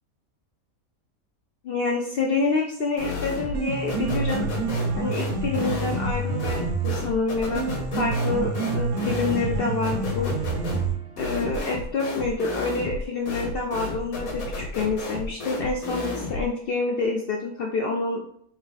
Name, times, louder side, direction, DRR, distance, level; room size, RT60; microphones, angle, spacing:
voice 1, 1.6-4.5 5.0-7.7 8.0-10.3 11.2-18.2, left 3 dB, 60° left, 0 dB, 0.6 m, -27 dB
sound 1, 3.0-3.6 3.9-16.5, left 3 dB, 80° left, 1.4 m, -32 dB
Piano, 3.4-11.3, right 3 dB, 65° right, 0.9 m, -28 dB
4.2 x 2.3 x 3.9 m, 0.63 s
omnidirectional pair, 1.5 m